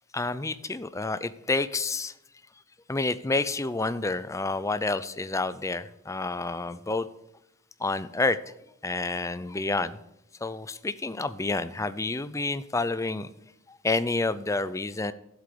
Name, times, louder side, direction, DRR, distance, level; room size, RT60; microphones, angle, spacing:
voice 1, 0.1-2.1 2.9-7.1 7.8-8.4 8.8-10.0 10.4-13.3 13.7-15.1, left 3 dB, 15° left, 14 dB, 0.5 m, -29 dB
11.5 x 8.1 x 6.8 m, 0.82 s
head